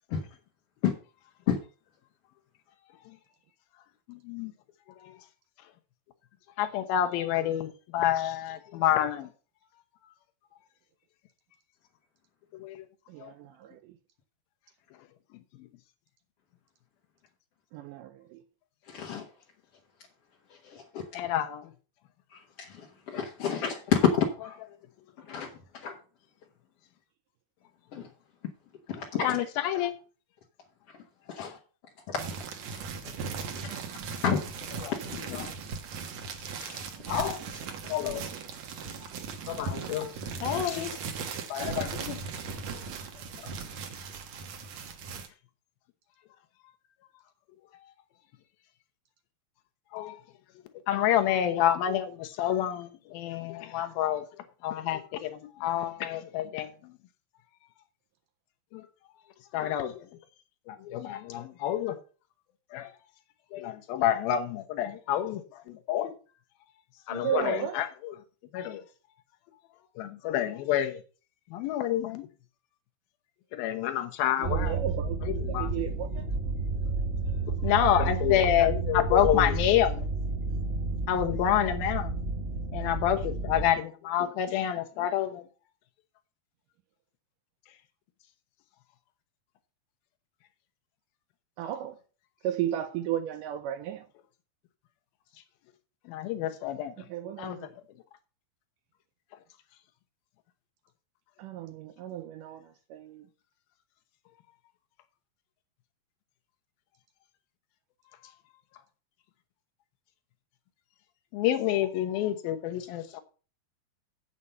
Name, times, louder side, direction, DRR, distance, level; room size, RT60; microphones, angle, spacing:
voice 1, 4.1-4.5 5.0-5.2 6.6-9.3 12.5-12.9 13.2-13.3 21.1-21.7 25.3-25.4 29.1-29.9 31.4-31.5 34.8-35.0 35.3-35.5 36.6-38.3 39.0-39.1 39.5-40.1 40.4-41.0 41.5-42.2 42.7-42.8 43.4-43.5 49.9-50.2 50.9-54.2 54.6-56.9 58.7-58.9 59.5-60.1 60.7-62.0 62.7-62.9 63.5-66.1 67.1-68.1 68.5-68.8 70.0-71.0 71.5-72.3 73.5-74.8 75.2-75.7 77.6-80.1 81.1-82.1 82.7-85.4 96.1-96.9 97.4-97.6 111.3-113.2, left 11 dB, 80° left, 2.8 m, -28 dB
voice 2, 13.1-13.9 17.7-18.4 67.1-67.8 74.4-76.2 91.6-92.0 92.4-94.1 97.0-97.7 101.4-103.3, right 11 dB, 80° right, 1.9 m, -34 dB
voice 3, 18.9-19.3 20.7-21.0 22.7-24.6 25.3-25.5 25.8-25.9 27.9-28.1 29.0-29.3 31.3-31.5 32.1-32.2 33.6-33.8 34.2-34.4 35.1-35.5, left 7 dB, 60° left, 1.7 m, -29 dB
sound 1, 32.2-45.3, right 5 dB, 60° right, 2.0 m, -38 dB
sound 2, 74.4-83.7, right 3 dB, 35° right, 1.2 m, -31 dB
8.2 x 7.5 x 5.5 m
omnidirectional pair, 4.3 m